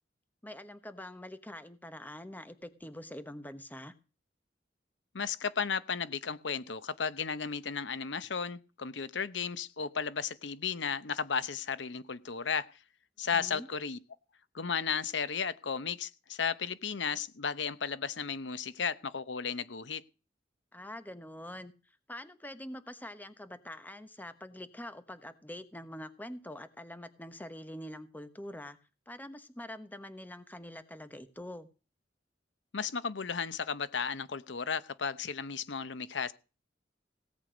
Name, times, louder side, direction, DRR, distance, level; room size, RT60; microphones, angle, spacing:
voice 1, 0.4-3.9 13.3-13.7 20.7-28.8 29.1-31.7, left 1 dB, 10° left, 1.1 m, -45 dB
voice 2, 5.1-12.7 13.2-14.0 14.5-20.0 32.7-36.3, left 6 dB, 80° left, 0.9 m, -34 dB
17.0 x 8.3 x 5.1 m
head